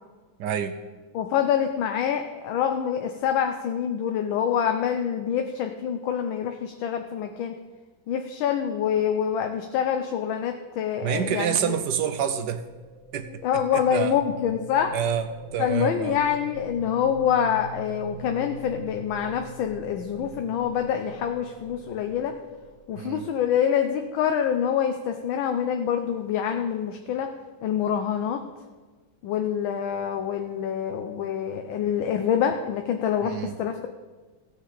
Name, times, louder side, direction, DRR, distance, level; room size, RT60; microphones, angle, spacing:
voice 1, 0.4-0.7 11.0-12.6 13.1-13.3 13.5-14.2 14.9-16.2 23.0-23.3 33.2-33.6, right 8 dB, 70° right, 10 dB, 1.1 m, -28 dB
voice 2, 1.1-7.5 8.1-11.8 13.4-14.9 15.6-22.4 22.9-27.3 27.6-28.4 29.2-33.9, left 8 dB, 75° left, 5 dB, 1.5 m, -26 dB
sound 1, 12.2-24.0, right 2 dB, 35° right, 0.5 m, -43 dB
16.5 x 6.8 x 4.9 m, 1.4 s
omnidirectional pair, 2.2 m